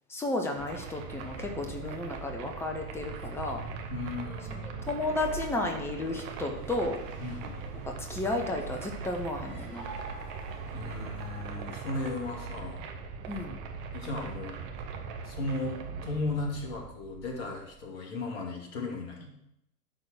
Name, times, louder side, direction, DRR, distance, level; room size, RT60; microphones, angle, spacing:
voice 1, 0.1-3.6 4.5-7.0 7.9-9.9 13.3-13.6, left 2 dB, 5° left, 2 dB, 1.1 m, -33 dB
sound 1, 0.6-17.9, right 5 dB, 35° right, 1.3 m, -40 dB
voice 2, 3.9-4.9 7.2-7.6 10.7-12.9 13.9-14.6 15.2-19.3, left 2 dB, 45° left, 0 dB, 2.9 m, -36 dB
sound 2, 6.0-12.3, right 2 dB, 85° right, 2.3 m, -49 dB
11.5 x 4.2 x 6.6 m, 0.79 s
figure-of-eight pair, 105°, 47 cm